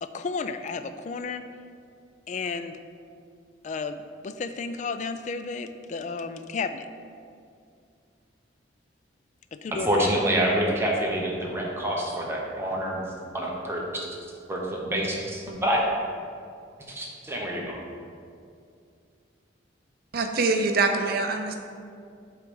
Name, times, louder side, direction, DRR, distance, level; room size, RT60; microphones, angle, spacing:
voice 1, 0.0-1.4 2.3-2.8 3.6-6.9 9.6-10.1, left 4 dB, 40° left, 10 dB, 0.3 m, -33 dB
voice 2, 9.7-13.0 13.3-13.8 14.5-15.8 16.9-17.8, right 1 dB, 15° right, -3 dB, 0.9 m, -27 dB
voice 3, 20.1-21.6, right 3 dB, 55° right, 5 dB, 0.6 m, -24 dB
7.6 x 3.2 x 5.2 m, 2.4 s
head